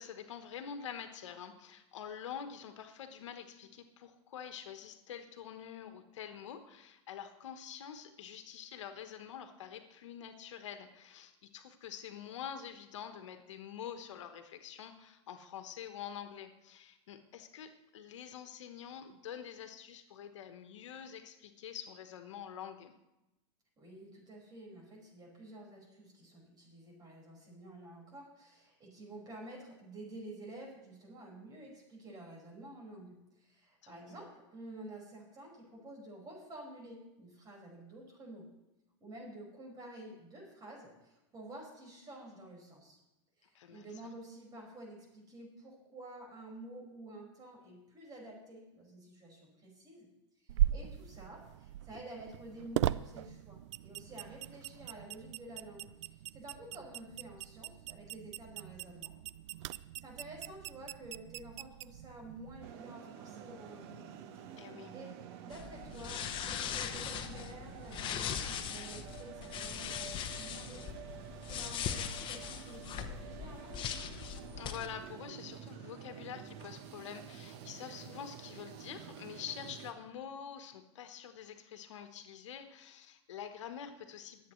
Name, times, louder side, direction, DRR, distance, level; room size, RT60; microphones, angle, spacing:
voice 1, 0.0-22.9 33.8-34.2 43.5-43.9 64.6-65.0 74.6-84.5, left 8 dB, 80° left, 7 dB, 1.3 m, -46 dB
voice 2, 23.8-38.5 39.0-43.0 43.4-50.1 50.4-59.1 60.0-64.1 64.9-65.1 65.4-70.9 71.4-73.9, right 1 dB, 25° right, -1 dB, 5.3 m, -50 dB
sound 1, 50.5-62.7, right 12 dB, 75° right, 0.4 m, -39 dB
sound 2, 62.6-79.9, right 9 dB, 55° right, 1.2 m, -49 dB
sound 3, 65.5-74.9, left 9 dB, 35° left, 1.0 m, -40 dB
25.0 x 8.4 x 3.2 m, 0.95 s
hypercardioid pair, 125°, 15 cm